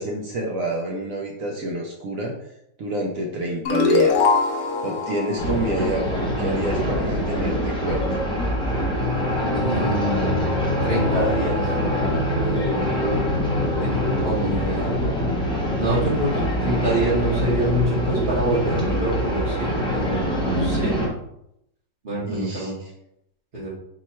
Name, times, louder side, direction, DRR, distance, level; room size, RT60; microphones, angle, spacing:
voice 1, 0.0-2.3 2.8-4.3 4.8-8.0 22.3-22.9, right 1 dB, 70° right, 0 dB, 0.8 m, -28 dB
sound 1, 3.7-6.9, left 4 dB, 70° left, 0.9 m, -23 dB
sound 2, 5.4-21.1, equal, 5° left, 0.7 m, -24 dB
voice 2, 9.5-10.5 10.8-11.7 12.4-12.9 13.8-15.2 15.8-21.0 22.0-22.7 23.5-23.7, right 1 dB, 40° right, -9 dB, 0.8 m, -26 dB
4.5 x 2.1 x 4.2 m, 0.78 s
omnidirectional pair, 2.0 m